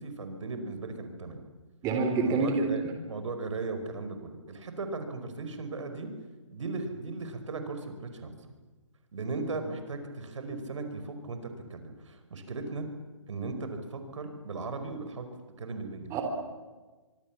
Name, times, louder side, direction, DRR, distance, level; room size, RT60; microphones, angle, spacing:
voice 1, 0.0-1.4 2.2-2.8 3.1-6.1 6.5-8.3 9.1-12.9 13.3-15.3 15.6-16.2, right 3 dB, 65° right, 7 dB, 5.2 m, -37 dB
voice 2, 1.8-2.7 16.1-16.2, right 4 dB, 20° right, 4 dB, 3.4 m, -26 dB
24.5 x 24.5 x 7.5 m, 1.3 s
hypercardioid pair, 145°, 17 cm